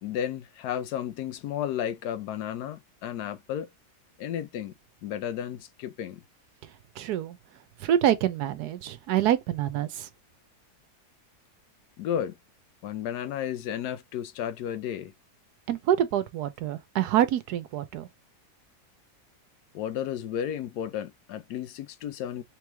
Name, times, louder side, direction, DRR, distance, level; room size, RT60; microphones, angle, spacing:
voice 1, 0.0-3.7 4.2-4.7 5.0-6.2 12.0-12.4 12.8-15.1 19.7-22.4, left 10 dB, 85° left, 1.2 m, -33 dB
voice 2, 7.0-7.4 7.8-10.1 15.7-18.1, right 11 dB, 85° right, 1.2 m, -26 dB
3.5 x 3.1 x 3.3 m
omnidirectional pair, 1.7 m